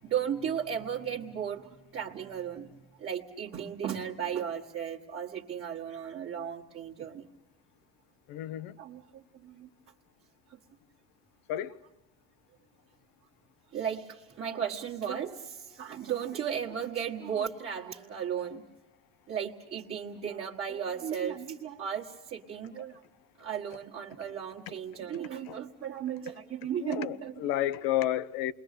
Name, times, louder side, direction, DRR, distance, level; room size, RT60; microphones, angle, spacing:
voice 1, 0.0-7.3 8.8-9.7 10.5-10.6 13.7-18.6 19.3-23.0 23.4-27.3, right 8 dB, 35° right, 1.7 m, -35 dB
voice 2, 8.3-8.8 11.5-11.8 25.5-25.6 26.8-28.5, left 12 dB, 70° left, 1.1 m, -31 dB
28.5 x 22.0 x 6.7 m
cardioid pair, 145°, 38 cm